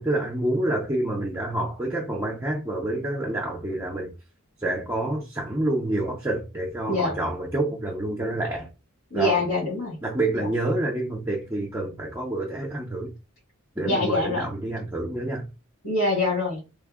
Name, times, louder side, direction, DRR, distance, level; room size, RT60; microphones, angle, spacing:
voice 1, 0.0-4.2 4.6-8.7 9.1-9.4 10.0-13.1 13.8-15.5, right 1 dB, 10° right, 0.5 m, -28 dB
voice 2, 9.1-10.0 10.4-10.5 13.8-14.4 15.8-16.6, left 2 dB, 70° left, 1.9 m, -24 dB
3.3 x 2.0 x 3.5 m
head